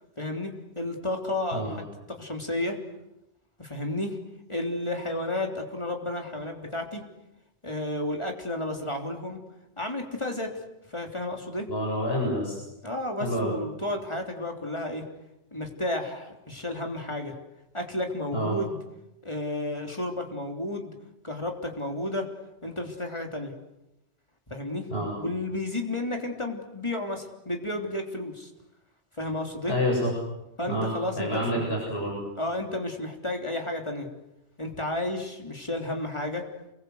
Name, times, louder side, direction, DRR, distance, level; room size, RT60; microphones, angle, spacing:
voice 1, 0.2-2.8 3.6-4.2 4.5-7.0 7.6-9.4 9.8-10.5 10.9-11.7 12.8-15.1 15.5-17.3 17.7-18.8 19.2-20.9 21.2-22.3 22.6-23.5 24.5-24.9 25.2-28.5 29.2-29.7 30.6-31.9 32.4-34.1 34.6-36.4, left 1 dB, 25° left, 2 dB, 3.6 m, -32 dB
voice 2, 11.7-12.6 13.2-13.5 18.3-18.6 24.9-25.1 29.7-30.1 30.7-32.2, equal, 60° left, -2 dB, 8.1 m, -28 dB
28.5 x 22.0 x 8.1 m, 0.90 s
omnidirectional pair, 1.1 m